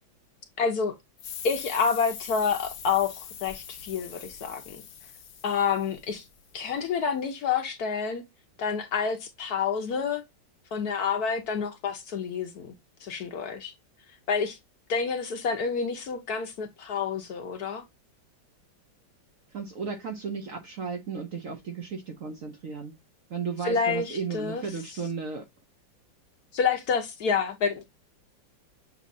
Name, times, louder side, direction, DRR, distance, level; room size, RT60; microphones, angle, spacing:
voice 1, 0.6-0.9 1.4-4.8 5.4-6.2 6.5-8.2 8.6-10.2 10.7-12.7 13.0-13.7 14.3-14.6 14.9-17.8 23.6-24.6 26.5-27.8, left 6 dB, 65° left, 1.1 m, -28 dB
sound 1, 1.2-6.5, left 8 dB, 80° left, 1.6 m, -42 dB
voice 2, 19.5-23.0 23.3-25.5, right 5 dB, 60° right, 0.9 m, -34 dB
7.2 x 2.7 x 2.6 m
omnidirectional pair, 2.1 m